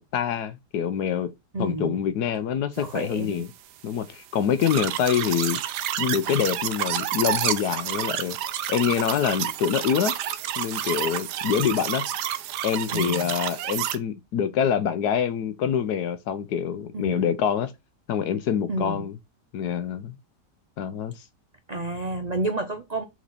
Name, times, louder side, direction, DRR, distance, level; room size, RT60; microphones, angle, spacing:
voice 1, 0.0-1.3 1.6-3.5 3.8-5.6 6.0-8.4 8.7-10.1 10.6-12.0 12.6-17.7 18.1-19.1 19.5-20.2 20.8-21.1, left 8 dB, 70° left, 1.3 m, -25 dB
voice 2, 1.5-2.1 2.8-3.4 12.9-13.3 16.9-17.3 18.7-19.1 21.7-23.0, right 2 dB, 60° right, 0.4 m, -30 dB
sound 1, 4.6-14.0, right 11 dB, 80° right, 1.3 m, -29 dB
6.0 x 4.2 x 4.1 m
omnidirectional pair, 1.8 m